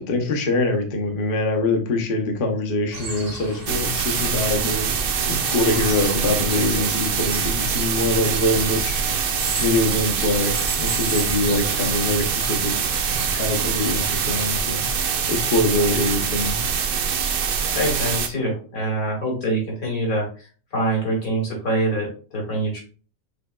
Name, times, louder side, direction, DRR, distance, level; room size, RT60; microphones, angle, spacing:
voice 1, 0.1-5.0 5.3-12.7 13.3-16.6, left 2 dB, 45° left, 3 dB, 0.9 m, -24 dB
sound 1, 2.9-14.4, right 2 dB, 40° right, 1.6 m, -35 dB
sound 2, 3.7-18.3, right 7 dB, 60° right, 0.6 m, -24 dB
voice 2, 17.7-22.8, right 1 dB, 85° left, -2 dB, 2.6 m, -25 dB
6.3 x 3.4 x 2.3 m, 0.39 s
omnidirectional pair, 1.5 m